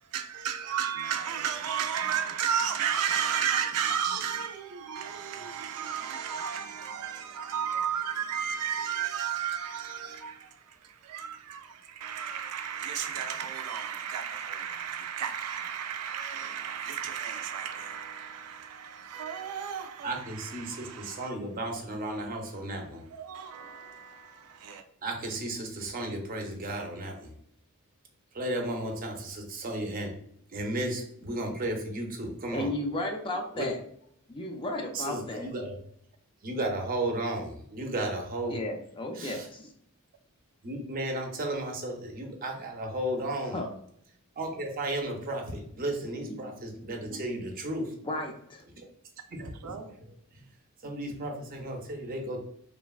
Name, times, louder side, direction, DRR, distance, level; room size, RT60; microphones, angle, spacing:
voice 1, 0.1-21.3 21.7-21.8 22.0-22.3 23.1-24.8 49.4-49.9, right 8 dB, 85° right, 0.4 m, -33 dB
voice 2, 20.0-23.0 25.0-27.3 28.3-30.1 30.5-32.7 33.5-33.7 34.9-35.7 36.4-38.6 39.2-39.5 40.6-43.6 44.4-47.9 49.3-49.8 50.8-52.4, right 1 dB, 40° right, 0.5 m, -34 dB
voice 3, 32.5-33.8 34.3-35.5 38.5-39.7 43.5-43.7 46.3-46.4 48.1-48.6, left 1 dB, 20° left, 0.4 m, -34 dB
3.2 x 2.2 x 2.3 m
head